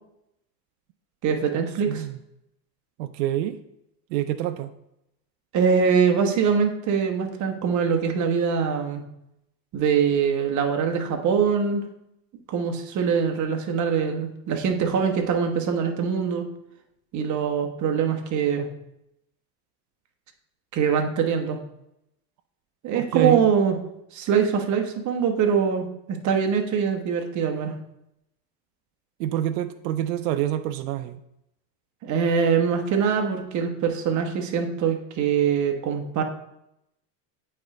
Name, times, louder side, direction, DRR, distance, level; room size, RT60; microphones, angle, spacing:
voice 1, 1.2-2.0 5.5-9.0 9.7-11.8 12.5-16.5 17.1-18.7 20.7-21.6 22.8-23.8 24.1-27.8 32.0-36.2, right 6 dB, 35° right, 4 dB, 1.0 m, -23 dB
voice 2, 1.9-2.2 3.0-3.6 4.1-4.7 22.9-23.4 29.2-31.2, right 12 dB, 80° right, 10 dB, 0.6 m, -26 dB
8.4 x 3.3 x 3.8 m, 0.83 s
supercardioid pair, 115°, 49 cm